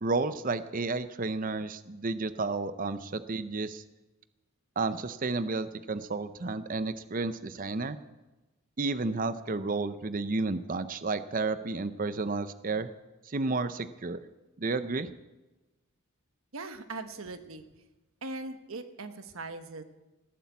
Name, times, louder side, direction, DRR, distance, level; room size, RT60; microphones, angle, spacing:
voice 1, 0.0-3.8 4.8-8.0 8.8-12.9 13.2-14.2 14.6-15.1, right 3 dB, 40° right, 13 dB, 0.6 m, -31 dB
voice 2, 16.5-17.6 18.2-19.8, right 3 dB, 70° right, 9 dB, 1.3 m, -40 dB
18.5 x 8.5 x 8.4 m, 1.1 s
head